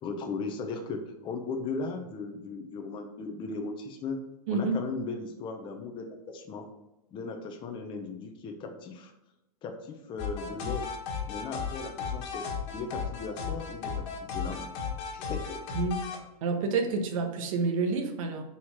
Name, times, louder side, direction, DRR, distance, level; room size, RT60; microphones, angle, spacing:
voice 1, 0.0-4.2 4.5-6.7 7.1-9.1 9.6-11.0 11.3-14.7 15.1-15.6, left 4 dB, 25° left, 3 dB, 0.8 m, -37 dB
sound 1, 10.2-16.2, left 6 dB, 40° left, 1.7 m, -34 dB
voice 2, 16.4-18.4, right 4 dB, 60° right, 4 dB, 1.3 m, -28 dB
4.8 x 4.1 x 5.7 m, 0.95 s
hypercardioid pair, 125°, 20 cm